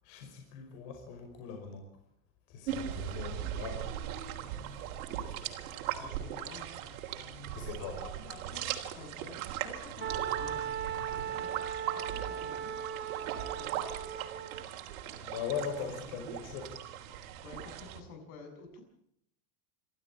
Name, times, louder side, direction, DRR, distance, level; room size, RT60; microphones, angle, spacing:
voice 1, 0.0-1.8 2.5-3.9 4.7-4.8 5.3-5.4 7.5-8.0 15.2-16.7, left 6 dB, 55° left, 3 dB, 5.4 m, -40 dB
sound 1, 2.7-18.0, right 10 dB, 80° right, 3.6 m, -39 dB
voice 2, 6.0-6.9 7.8-12.8 13.6-13.8 15.7-16.2 17.4-18.8, left 4 dB, 80° left, 5 dB, 7.1 m, -50 dB
Wind instrument woodwind instrument, 10.0-14.6, right 9 dB, 25° right, 1.8 m, -38 dB
28.0 x 13.0 x 8.7 m, 0.71 s
supercardioid pair, 155°, 42 cm